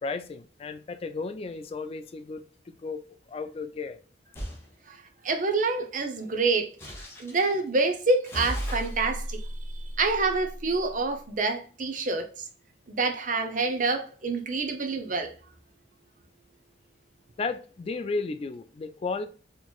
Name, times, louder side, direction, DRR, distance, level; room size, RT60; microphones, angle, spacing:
voice 1, 0.0-3.0 3.3-4.0 17.4-19.3, left 4 dB, 35° left, 0.3 m, -34 dB
sound 1, 4.3-4.6 6.8-7.5 8.2-10.9, equal, 15° left, 1.0 m, -35 dB
voice 2, 4.9-6.7 7.2-9.4 10.0-12.3 12.9-15.3, right 3 dB, 45° right, 0.6 m, -27 dB
4.4 x 3.0 x 2.3 m
head